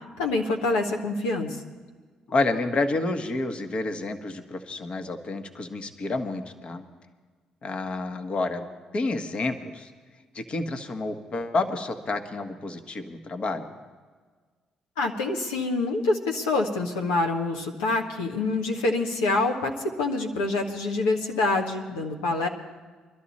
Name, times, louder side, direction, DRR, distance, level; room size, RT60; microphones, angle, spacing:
voice 1, 0.2-1.6 15.0-22.5, left 2 dB, 90° left, 2 dB, 1.3 m, -26 dB
voice 2, 2.3-6.9 7.6-8.7 8.9-9.9 10.3-13.7, left 2 dB, 50° left, 7 dB, 1.4 m, -29 dB
21.5 x 12.5 x 4.2 m, 1.5 s
hypercardioid pair, 50°, 2 cm